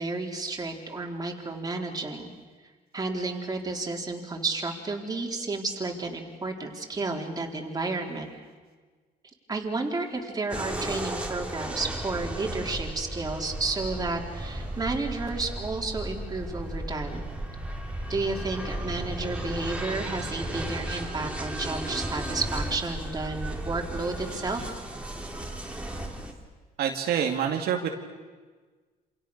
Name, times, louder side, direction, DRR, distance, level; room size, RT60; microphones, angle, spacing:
voice 1, 0.0-2.3 2.9-8.4 9.5-17.2 18.1-24.6, right 3 dB, 20° right, 1 dB, 3.9 m, -32 dB
sound 1, 10.5-26.3, right 1 dB, 5° right, 3.3 m, -34 dB
voice 2, 26.8-27.9, right 8 dB, 70° right, 2 dB, 2.5 m, -26 dB
28.5 x 27.0 x 6.7 m, 1.4 s
cardioid pair, 110°, 17 cm